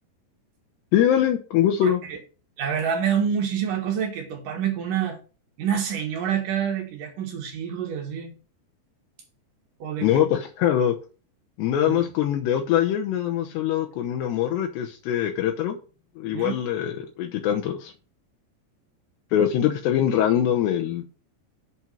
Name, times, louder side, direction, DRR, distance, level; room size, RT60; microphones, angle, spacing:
voice 1, 0.9-2.0 10.0-10.9 11.6-15.8 16.2-17.9 19.3-21.1, left 10 dB, 75° left, 3.0 m, -23 dB
voice 2, 1.8-2.2 2.6-5.2 5.6-8.3 9.8-10.3 11.8-12.1 16.3-16.6, right 8 dB, 60° right, 2.7 m, -27 dB
8.4 x 4.5 x 7.1 m
omnidirectional pair, 5.1 m